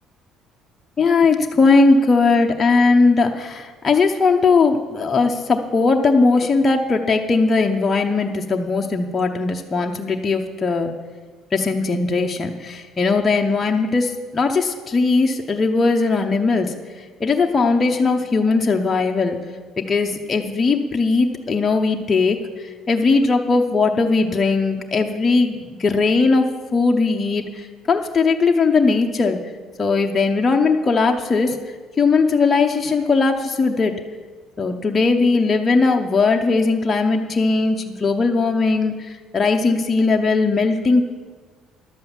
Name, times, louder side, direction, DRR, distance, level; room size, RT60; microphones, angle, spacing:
voice 1, 1.0-10.9 11.5-16.7 17.2-19.4 19.9-29.4 29.8-31.6 32.0-33.9 34.6-41.0, left 4 dB, 25° left, 2 dB, 0.8 m, -19 dB
11.5 x 7.7 x 7.1 m, 1.4 s
cardioid pair, 130°, 0 cm